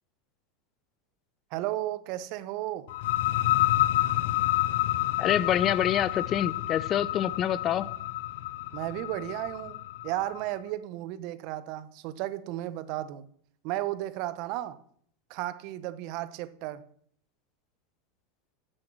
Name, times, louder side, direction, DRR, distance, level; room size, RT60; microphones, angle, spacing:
voice 1, 1.5-2.9 8.7-9.8 10.0-13.2 13.6-14.8 15.3-16.8, right 14 dB, 55° right, 0.9 m, -34 dB
sound 1, 2.9-10.4, left 15 dB, 65° left, 0.4 m, -29 dB
voice 2, 5.2-7.9, left 10 dB, 40° left, 0.8 m, -26 dB
12.0 x 7.7 x 6.1 m
hypercardioid pair, 90°, 0 cm